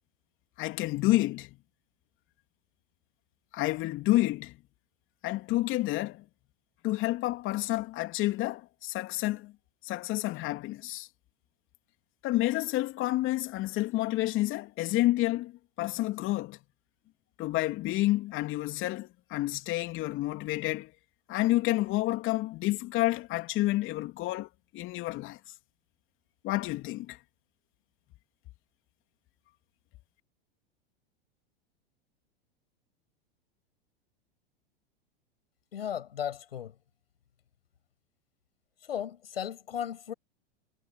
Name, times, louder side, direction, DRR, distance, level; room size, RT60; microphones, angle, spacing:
voice 1, 0.6-1.6 3.5-4.5 5.2-6.2 6.8-9.5 9.8-11.1 12.2-16.6 17.4-20.9 21.3-24.5 24.7-25.4 26.4-27.2, left 17 dB, 45° left, 3.2 m, -29 dB
voice 2, 35.7-36.8 38.8-40.1, left 9 dB, 80° left, 7.7 m, -35 dB
hypercardioid pair, 100°, 29 cm